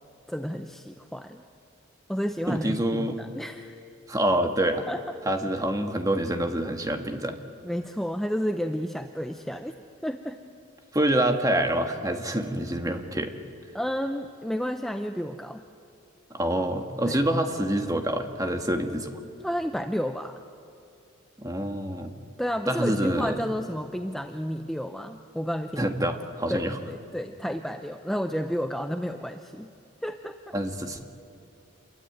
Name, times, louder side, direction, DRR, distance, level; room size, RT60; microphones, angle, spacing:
voice 1, 0.3-1.4 2.1-3.8 4.9-5.0 7.6-9.7 10.0-10.4 13.7-15.6 17.0-17.2 19.4-20.4 22.4-25.9 26.5-29.7 30.0-30.5, equal, ahead, 6 dB, 0.6 m, -31 dB
voice 2, 2.5-3.2 4.1-4.9 5.2-7.4 10.9-13.3 16.3-19.1 21.4-22.1 22.7-23.4 25.8-26.8 30.5-31.0, right 1 dB, 15° right, 5 dB, 1.7 m, -26 dB
27.5 x 22.5 x 9.4 m, 2.5 s
head